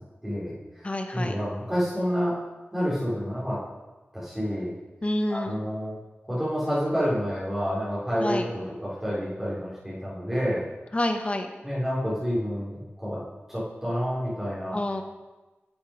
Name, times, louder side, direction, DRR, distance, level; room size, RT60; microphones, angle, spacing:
voice 1, 0.2-2.4 2.7-3.6 4.1-4.7 5.3-6.0 6.3-10.6 11.6-13.2 13.5-14.8, equal, 10° right, -10 dB, 3.9 m, -29 dB
voice 2, 0.8-1.4 5.0-5.6 8.2-8.4 10.9-11.5 14.7-15.0, left 1 dB, 30° left, 5 dB, 1.0 m, -28 dB
11.5 x 7.0 x 5.0 m, 1.2 s
wide cardioid pair, 80°, 4 cm